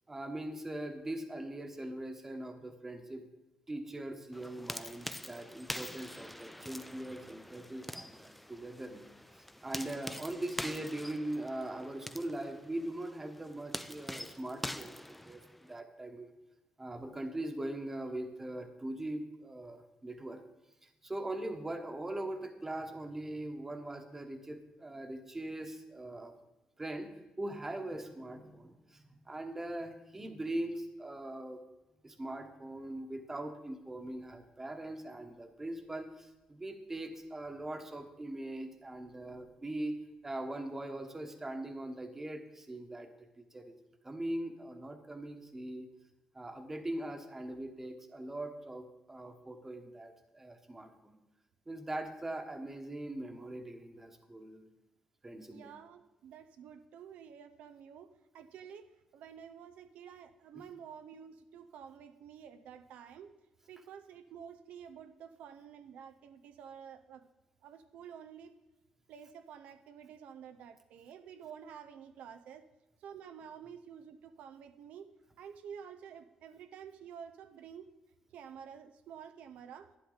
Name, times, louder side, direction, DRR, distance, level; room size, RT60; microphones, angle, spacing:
voice 1, 0.1-3.2 3.7-9.0 9.3-16.3 16.8-20.4 20.8-26.3 26.8-27.1 27.4-31.6 32.0-43.1 43.4-43.8 44.0-45.9 46.3-51.1 51.7-54.7 55.2-55.7, right 1 dB, 15° right, 6 dB, 1.2 m, -41 dB
sound 1, 4.3-15.8, left 1 dB, 5° left, 0.4 m, -45 dB
voice 2, 55.5-63.4 63.7-67.3 67.6-68.5 69.1-72.7 73.0-77.9 78.3-79.9, right 8 dB, 85° right, 9 dB, 0.6 m, -50 dB
12.0 x 10.0 x 3.9 m, 1.0 s
cardioid pair, 120°, 2 cm